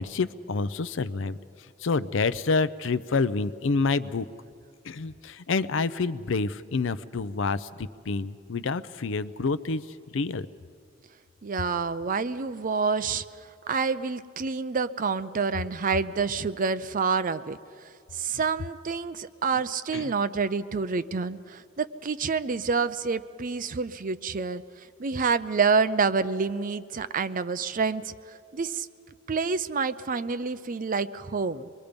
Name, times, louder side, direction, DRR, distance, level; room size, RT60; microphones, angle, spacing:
voice 1, 0.0-1.4 1.8-4.3 4.8-9.9 10.1-10.5 19.9-20.1, left 4 dB, 70° left, 15 dB, 0.5 m, -28 dB
voice 2, 11.4-13.2 13.6-17.6 18.1-24.6 25.0-28.1 28.5-28.9 29.3-31.7, right 5 dB, 45° right, 13 dB, 0.5 m, -28 dB
25.0 x 21.5 x 5.2 m, 2.3 s
head